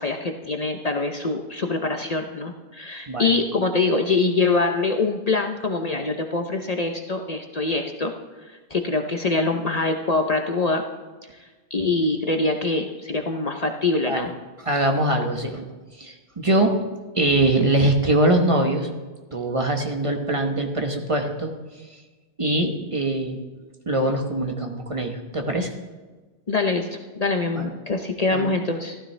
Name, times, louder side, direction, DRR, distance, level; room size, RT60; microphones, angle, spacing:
voice 1, 0.0-8.1 8.4-10.8 11.3-14.3 26.5-29.0, left 3 dB, 40° left, 4 dB, 0.8 m, -24 dB
voice 2, 14.6-15.6 16.0-16.8 17.1-18.9 19.3-21.5 22.4-23.4 23.9-25.7 27.5-27.7 28.3-28.5, right 1 dB, 30° right, 3 dB, 1.1 m, -22 dB
15.0 x 12.5 x 3.3 m, 1.3 s
omnidirectional pair, 1.1 m